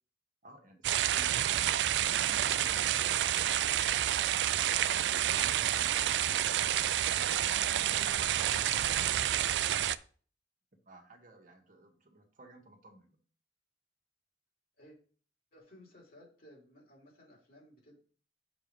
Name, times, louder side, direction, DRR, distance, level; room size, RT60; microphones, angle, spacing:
voice 1, 0.4-3.6 4.1-7.0 7.7-8.6 10.9-13.2, right 2 dB, 50° right, 3 dB, 1.3 m, -56 dB
sound 1, 0.8-10.0, right 11 dB, 75° right, 0.4 m, -29 dB
voice 2, 8.3-8.9 9.2-9.7 14.8-15.0 15.5-18.0, left 1 dB, 55° left, -2 dB, 3.2 m, -57 dB
6.2 x 4.6 x 5.3 m, 0.43 s
head